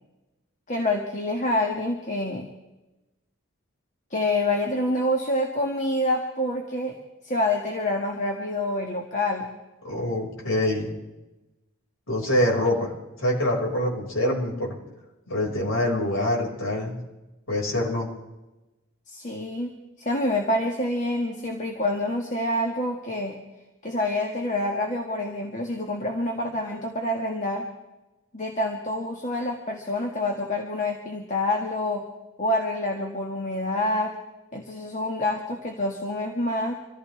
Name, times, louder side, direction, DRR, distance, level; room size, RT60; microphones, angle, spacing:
voice 1, 0.7-2.4 4.1-7.0 7.2-9.5 19.1-23.4 23.8-27.7 28.3-32.0 32.4-34.2 34.5-36.7, left 1 dB, 35° left, 1 dB, 1.7 m, -27 dB
voice 2, 9.8-10.9 12.1-12.9 13.2-14.8 15.3-17.0 17.5-18.1, left 1 dB, 75° left, -2 dB, 5.6 m, -25 dB
26.0 x 15.0 x 3.5 m, 1.0 s
head